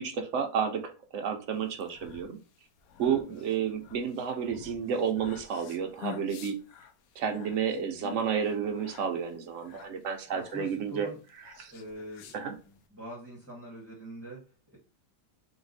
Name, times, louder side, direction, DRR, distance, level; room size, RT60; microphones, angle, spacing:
voice 1, 0.0-2.4 3.0-6.5 7.2-11.1 11.6-11.7 12.3-12.5, right 7 dB, 65° right, 5 dB, 0.7 m, -31 dB
sound 1, 1.7-12.9, left 10 dB, 70° left, 0.9 m, -48 dB
voice 2, 10.3-11.2 11.7-12.4 12.6-14.8, equal, 10° right, -6 dB, 1.2 m, -45 dB
3.4 x 3.0 x 4.0 m, 0.33 s
omnidirectional pair, 1.9 m